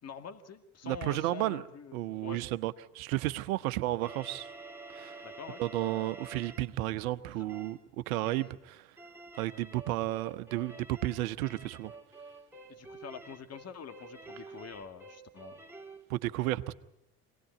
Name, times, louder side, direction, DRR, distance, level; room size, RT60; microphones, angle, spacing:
voice 1, 0.0-2.4 5.2-5.6 7.3-7.4 8.4-8.5 12.7-15.6, left 6 dB, 35° left, 2.3 m, -46 dB
voice 2, 0.8-1.6 1.9-4.5 4.9-5.2 5.6-7.8 8.1-8.8 9.4-11.9 16.1-16.7, right 16 dB, 65° right, 1.1 m, -32 dB
sound 1, 4.0-6.7 7.5-7.8 8.2-8.6 9.0-16.0, right 3 dB, 5° right, 2.5 m, -49 dB
26.0 x 18.5 x 9.3 m
figure-of-eight pair, 65°, 45 cm